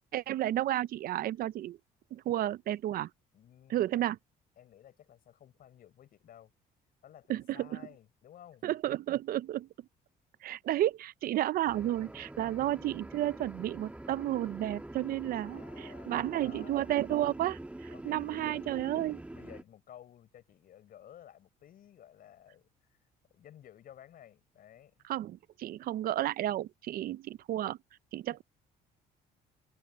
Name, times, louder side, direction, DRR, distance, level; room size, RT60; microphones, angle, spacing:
voice 1, 0.1-1.8 2.1-3.1 3.7-4.2 7.3-7.8 8.6-9.7 10.4-19.2 25.1-27.8 28.1-28.4, right 13 dB, 60° right, 0.5 m, -32 dB
voice 2, 3.3-4.0 4.6-6.5 7.0-8.7 10.5-10.6 12.4-12.6 15.4-16.8 17.9-18.7 19.3-23.0 23.3-25.1, left 11 dB, 60° left, 5.3 m, -55 dB
sound 1, 11.7-19.6, right 1 dB, 10° right, 1.9 m, -45 dB
open air
cardioid pair, 110°, 17 cm